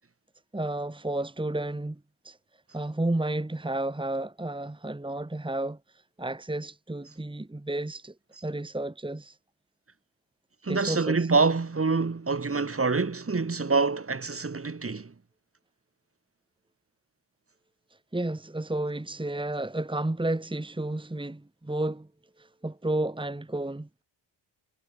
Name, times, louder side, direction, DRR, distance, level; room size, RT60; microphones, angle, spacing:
voice 1, 0.5-2.0 2.2-2.4 2.7-5.8 6.2-8.1 8.4-9.4 10.7-11.2 18.1-22.1 22.4-23.9, right 1 dB, 10° right, 2.6 m, -31 dB
voice 2, 10.6-15.1, right 4 dB, 30° right, 3.5 m, -26 dB
wide cardioid pair, 135°, 47 cm